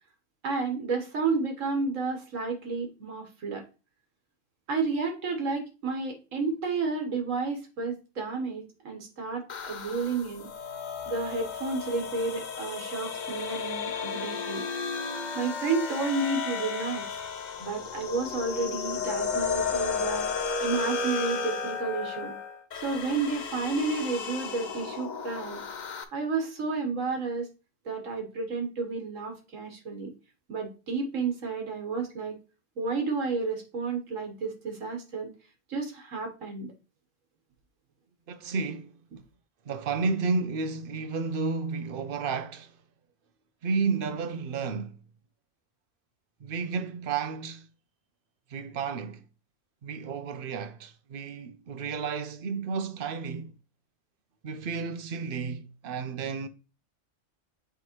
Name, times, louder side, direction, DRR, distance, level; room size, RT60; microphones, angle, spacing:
voice 1, 0.4-3.6 4.7-10.5 11.1-14.6 15.3-17.1 17.6-20.3 20.6-22.4 22.8-25.6 26.1-27.5 27.8-30.1 30.5-32.4 32.8-35.3 35.7-36.7, right 4 dB, 85° right, 1.7 m, -31 dB
sound 1, 9.5-26.0, left 5 dB, 45° left, 0.6 m, -33 dB
voice 2, 38.3-39.0 39.6-42.8 43.6-45.0 46.4-47.7 48.5-49.2 49.8-53.5 54.4-56.5, right 4 dB, 50° right, 0.8 m, -32 dB
7.6 x 4.6 x 3.0 m
omnidirectional pair, 1.3 m